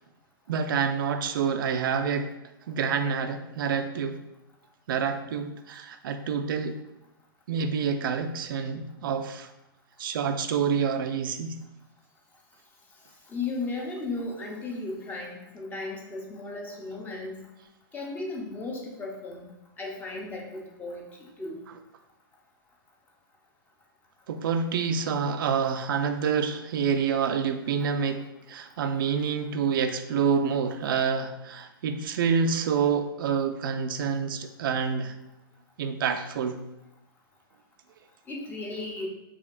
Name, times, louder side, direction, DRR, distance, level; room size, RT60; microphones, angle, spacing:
voice 1, 0.5-2.3 2.7-4.2 4.9-6.8 7.5-9.5 10.0-11.6 24.3-35.2 35.8-36.6, right 6 dB, 65° right, 8 dB, 0.4 m, -27 dB
voice 2, 13.3-17.4 17.9-19.4 19.8-21.7 38.3-39.1, left 3 dB, 15° left, -1 dB, 0.7 m, -35 dB
4.9 x 3.5 x 2.5 m, 0.88 s
hypercardioid pair, 140°, 12 cm